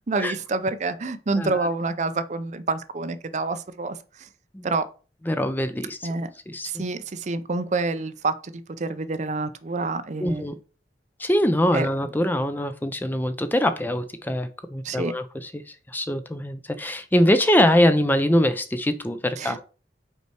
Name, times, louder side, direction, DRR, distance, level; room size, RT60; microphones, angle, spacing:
voice 1, 0.1-4.3 4.6-4.9 6.0-6.3 6.7-8.5 8.8-10.5 11.7-11.9 14.8-15.1 19.4-19.6, right 3 dB, 40° right, 0.5 m, -27 dB
voice 2, 1.4-1.7 4.5-4.7 5.3-6.1 6.5-6.8 10.2-10.5 11.2-15.6 15.9-19.6, left 1 dB, 10° left, 0.5 m, -23 dB
5.5 x 4.5 x 4.6 m
head